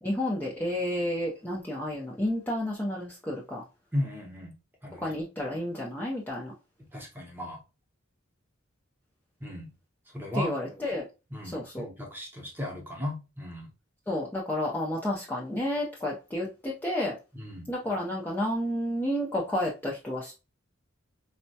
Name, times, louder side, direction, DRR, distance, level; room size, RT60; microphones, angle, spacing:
voice 1, 0.0-3.6 4.9-6.5 10.4-11.0 11.5-11.9 14.1-17.2 17.7-20.4, left 1 dB, 10° left, 0.6 m, -31 dB
voice 2, 3.9-4.5 4.8-5.1 6.9-7.6 9.4-9.7 10.1-10.5 11.3-13.7 17.3-17.7, left 1 dB, 10° right, 1.0 m, -35 dB
4.1 x 2.2 x 2.7 m
head